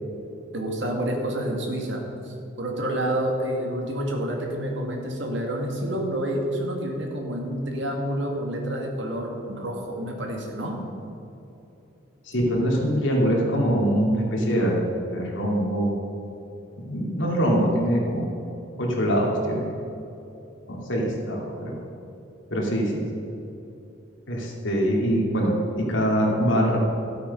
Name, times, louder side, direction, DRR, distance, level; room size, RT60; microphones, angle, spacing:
voice 1, 0.5-2.0 2.3-10.8, right 1 dB, 65° right, 1 dB, 2.1 m, -28 dB
voice 2, 12.2-14.8 15.1-15.9 16.8-18.2 18.8-19.7 20.7-21.8 22.5-23.2 24.3-26.8, equal, 75° left, -2 dB, 2.7 m, -23 dB
13.0 x 8.4 x 5.5 m, 2.9 s
head